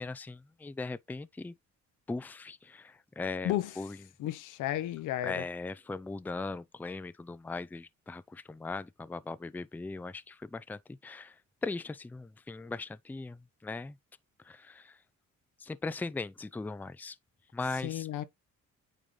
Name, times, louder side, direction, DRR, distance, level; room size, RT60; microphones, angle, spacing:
voice 1, 0.0-1.5 2.1-4.0 5.2-14.0 14.4-15.0 15.6-17.2 17.5-18.1, left 3 dB, 5° left, 0.4 m, -39 dB
voice 2, 4.2-5.4 17.8-18.2, left 13 dB, 85° left, 0.8 m, -33 dB
8.8 x 3.8 x 3.2 m
cardioid pair, 90°, 30 cm